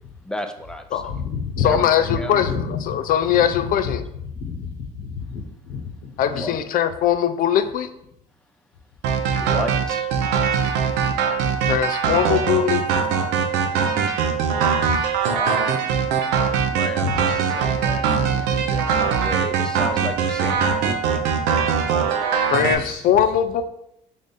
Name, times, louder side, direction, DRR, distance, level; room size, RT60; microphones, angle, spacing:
voice 1, 0.2-1.0 1.6-2.4 6.3-6.6 9.4-10.1 15.3-16.1 16.6-18.1 18.4-21.2, left 1 dB, 5° left, 6 dB, 0.5 m, -33 dB
voice 2, 1.0-6.4 14.7-15.0 17.0-17.2 22.0-23.1, left 5 dB, 80° left, 2 dB, 1.0 m, -30 dB
voice 3, 1.6-2.6 2.9-4.0 6.2-7.9 11.7-13.1 22.5-23.6, left 9 dB, 60° left, 9 dB, 0.4 m, -21 dB
sound 1, 9.0-22.7, right 6 dB, 80° right, 0.5 m, -21 dB
3.7 x 3.5 x 4.0 m, 0.78 s
supercardioid pair, 80°, 17 cm